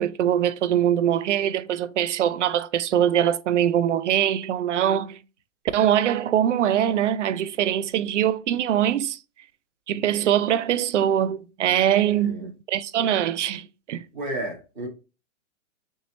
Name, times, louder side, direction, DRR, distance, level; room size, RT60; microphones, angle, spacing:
voice 1, 0.0-5.2 5.7-9.2 9.9-14.0, right 10 dB, 70° right, 0.5 m, -23 dB
voice 2, 12.1-12.5 14.1-14.9, right 1 dB, 10° left, 0.4 m, -32 dB
3.4 x 3.0 x 3.1 m
hypercardioid pair, 175°, 38 cm